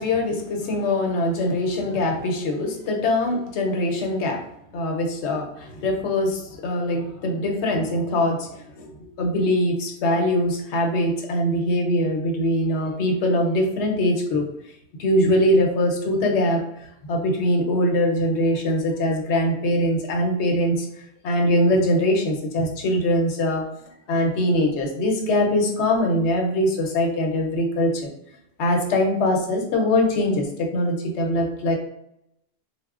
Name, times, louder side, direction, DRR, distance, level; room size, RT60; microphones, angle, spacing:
voice 1, 0.0-4.4 4.7-8.5 8.8-8.9 9.2-14.4 15.0-16.6 17.1-20.9 21.2-23.7 24.1-28.1 28.6-31.8, left 1 dB, 85° left, 2 dB, 0.9 m, -22 dB
4.1 x 2.0 x 2.3 m, 0.78 s
omnidirectional pair, 1.1 m